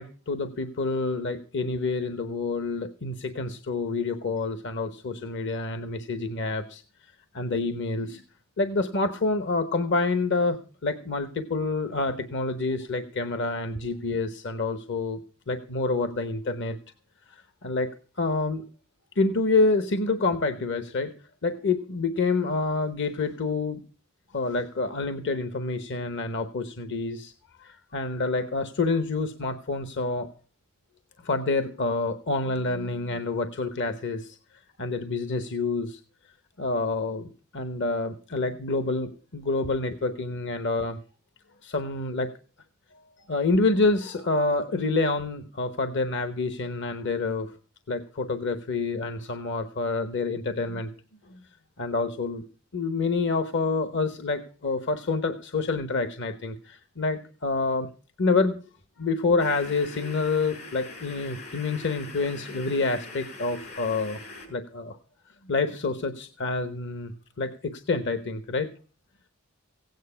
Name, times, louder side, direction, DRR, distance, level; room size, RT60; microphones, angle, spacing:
voice 1, 0.0-6.8 7.3-8.2 8.6-15.2 15.5-16.8 17.3-17.9 18.2-18.6 19.2-21.1 21.4-23.8 24.3-27.3 27.6-30.3 31.2-34.4 34.8-36.0 36.6-41.0 41.6-42.3 43.3-47.5 47.9-50.9 51.3-51.4 51.8-52.4 52.7-57.9 58.2-58.6 59.0-64.2 64.5-65.0 65.4-67.1 67.4-68.7, left 3 dB, 55° left, 10 dB, 1.0 m, -27 dB
sound 1, 59.4-64.5, left 2 dB, 85° left, 6.2 m, -42 dB
16.5 x 9.3 x 5.6 m, 0.38 s
head